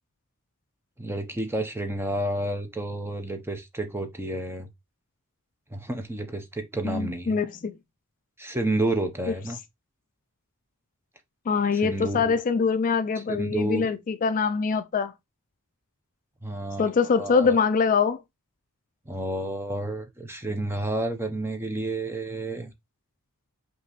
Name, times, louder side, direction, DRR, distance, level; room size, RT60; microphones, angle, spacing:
voice 1, 1.0-4.7 5.7-7.4 8.4-9.6 11.8-12.4 13.3-13.9 16.4-16.9 17.2-17.6 19.1-22.7, right 1 dB, 10° right, 0.7 m, -30 dB
voice 2, 6.8-7.8 11.5-15.1 16.8-18.2, left 5 dB, 40° left, 0.3 m, -24 dB
5.3 x 2.8 x 3.0 m
head